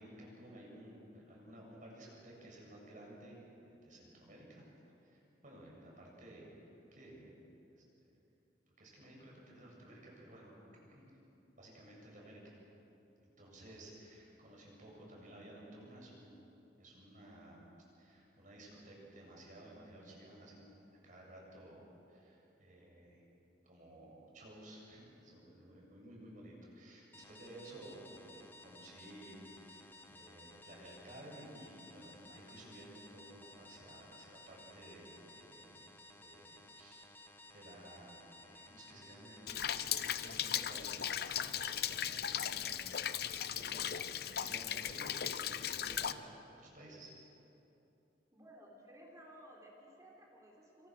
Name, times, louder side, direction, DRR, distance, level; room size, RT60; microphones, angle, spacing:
voice 1, 0.0-4.6 5.0-7.4 8.8-11.1 11.5-12.5 13.2-16.5 16.8-17.6 18.0-23.2 23.6-35.8 36.2-37.0 37.5-43.8 44.1-46.2 46.5-47.1, right 1 dB, 50° right, -2 dB, 7.6 m, -55 dB
sound 1, 27.1-42.1, left 2 dB, 15° left, 1.5 m, -57 dB
Rain, 39.5-46.1, left 9 dB, 60° left, 0.8 m, -37 dB
voice 2, 48.3-50.9, equal, 20° right, -2 dB, 3.8 m, -57 dB
27.0 x 25.5 x 6.3 m, 2.8 s
head